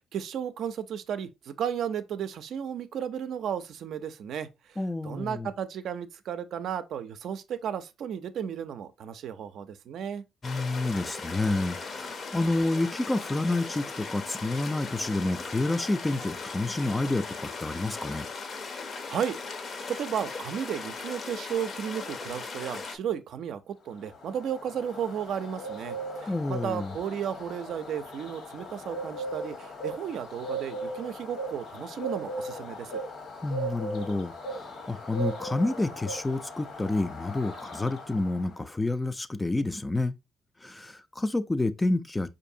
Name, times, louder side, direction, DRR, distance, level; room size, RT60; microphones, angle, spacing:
voice 1, 0.0-10.2 19.1-19.6 19.9-33.0, right 8 dB, 70° right, 0.4 m, -34 dB
voice 2, 4.8-5.5 10.4-18.3 26.3-26.9 33.4-40.1 40.6-42.3, left 2 dB, 15° left, 0.3 m, -29 dB
sound 1, 10.4-23.0, left 4 dB, 50° left, 0.6 m, -38 dB
Bird, 24.0-38.7, right 1 dB, 70° left, 1.2 m, -38 dB
4.7 x 2.6 x 2.6 m
cardioid pair, 90°, 0 cm